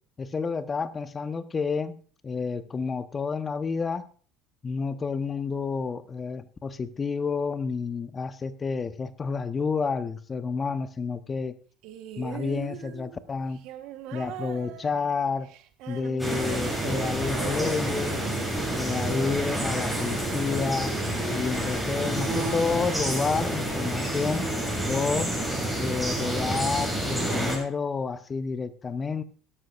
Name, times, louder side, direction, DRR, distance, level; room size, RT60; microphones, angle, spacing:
voice 1, 0.2-2.0 2.2-4.0 4.6-11.6 12.2-13.6 14.1-15.5 15.9-18.3 18.7-20.9 21.3-24.5 24.9-25.3 25.8-29.2, left 5 dB, 30° left, 12 dB, 0.9 m, -30 dB
sound 1, 11.8-20.2 21.2-21.3, right 11 dB, 60° right, 1.2 m, -41 dB
sound 2, 16.2-27.6, right 1 dB, ahead, 7.2 m, -29 dB
17.0 x 13.0 x 2.5 m, 0.42 s
hypercardioid pair, 70°, 0 cm